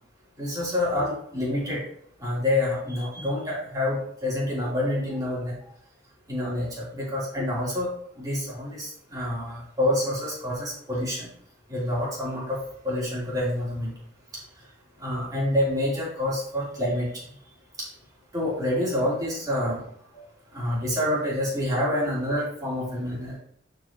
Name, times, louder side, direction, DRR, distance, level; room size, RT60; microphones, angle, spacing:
voice 1, 0.4-1.8 2.2-5.6 6.3-7.9 8.2-11.3 11.7-12.6 12.8-13.9 15.0-17.2 17.8-17.9 18.3-19.8 20.1-20.2 20.5-23.4, left 1 dB, 20° right, -7 dB, 3.3 m, -27 dB
11.0 x 5.0 x 2.9 m, 0.67 s
head